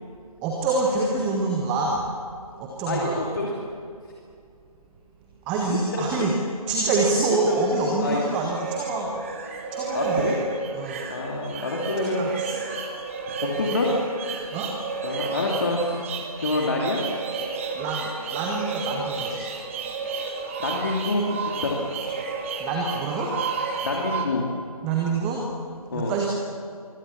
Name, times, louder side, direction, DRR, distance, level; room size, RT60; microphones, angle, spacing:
voice 1, 0.4-2.1 2.5-3.2 5.4-6.4 6.7-9.1 9.7-10.3 10.7-11.0 12.0-12.6 13.5-14.0 14.5-14.7 17.7-19.5 19.8-20.3 22.6-23.4 24.8-25.5 25.9-26.3, right 3 dB, 5° right, 0 dB, 0.7 m, -26 dB
voice 2, 2.9-3.5 5.7-6.3 7.5-7.6 8.0-8.2 9.9-10.4 11.1-12.2 13.4-13.9 14.4-14.6 15.0-16.1 16.4-17.0 20.6-21.8 23.8-24.4 25.9-26.3, left 3 dB, 35° left, -2 dB, 2.8 m, -27 dB
sound 1, 7.3-24.3, right 5 dB, 20° right, 1.9 m, -32 dB
24.0 x 23.5 x 7.2 m, 2.3 s
figure-of-eight pair, 155°, 19 cm